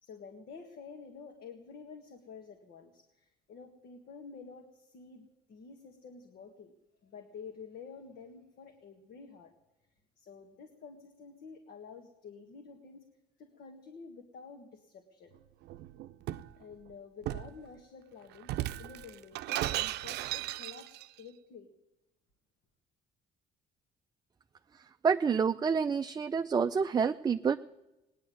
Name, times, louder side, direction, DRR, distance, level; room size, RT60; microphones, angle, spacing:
voice 1, 0.0-6.7 7.0-9.5 10.2-13.1 13.4-15.3 16.6-18.5 18.8-21.7, left 5 dB, 65° left, 4 dB, 1.8 m, -50 dB
Shatter, 15.7-16.5 17.3-17.6 18.4-21.1, right 15 dB, 80° right, 0.6 m, -36 dB
voice 2, 25.0-27.6, right 6 dB, 25° right, 8 dB, 0.4 m, -28 dB
18.0 x 10.5 x 7.8 m, 0.97 s
cardioid pair, 110°, 17 cm